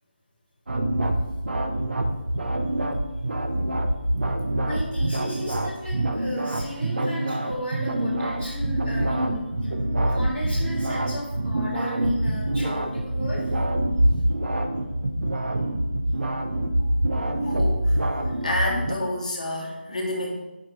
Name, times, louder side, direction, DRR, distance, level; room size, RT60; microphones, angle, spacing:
sound 1, 0.7-19.0, right 1 dB, 60° right, 0.7 m, -25 dB
voice 1, 4.7-9.7 10.1-13.5, equal, 10° right, -9 dB, 0.8 m, -34 dB
voice 2, 17.4-18.0 18.4-20.4, left 1 dB, 40° left, 0 dB, 1.2 m, -29 dB
5.3 x 5.0 x 4.5 m, 1.1 s
figure-of-eight pair, 175°, 6 cm